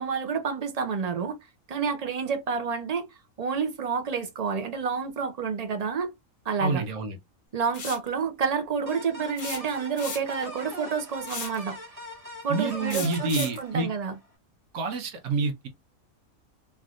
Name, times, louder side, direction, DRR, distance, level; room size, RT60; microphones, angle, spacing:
voice 1, 0.0-1.4 1.7-3.1 3.4-6.1 6.5-6.9 7.5-11.8 12.4-14.2, right 5 dB, 45° right, 0.5 m, -29 dB
voice 2, 6.6-7.2 12.5-13.9 14.7-15.7, right 4 dB, 85° right, 1.2 m, -28 dB
sound 1, 7.7-8.1 9.4-10.4 11.3-11.6 12.9-13.6, left 5 dB, 45° left, 0.8 m, -35 dB
sound 2, 8.9-14.3, left 1 dB, 25° right, 1.4 m, -42 dB
3.4 x 2.5 x 2.4 m
omnidirectional pair, 1.5 m